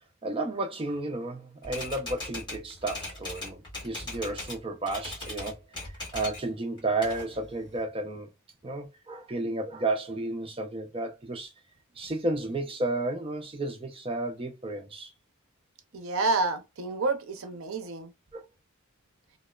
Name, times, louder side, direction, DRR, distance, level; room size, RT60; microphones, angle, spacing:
voice 1, 0.2-8.3 8.6-11.5 12.0-15.1 18.3-18.4, right 2 dB, 25° right, 0.5 m, -32 dB
Typewriter, 1.6-4.6 4.9-6.5 6.8-7.8, left 2 dB, 20° left, 1.3 m, -39 dB
voice 2, 15.9-18.1, right 3 dB, 70° right, 0.6 m, -29 dB
2.9 x 2.1 x 2.2 m
head